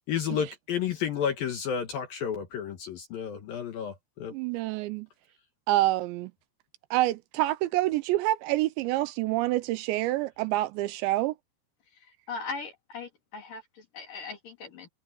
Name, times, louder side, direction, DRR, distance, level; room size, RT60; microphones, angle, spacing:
voice 1, 0.1-4.3, left 8 dB, 65° left, 2.7 m, -31 dB
voice 2, 4.3-5.1 5.7-6.3 6.9-11.3, right 16 dB, 80° right, 2.8 m, -27 dB
voice 3, 12.3-14.9, left 4 dB, 50° left, 4.6 m, -39 dB
omnidirectional pair, 5.3 m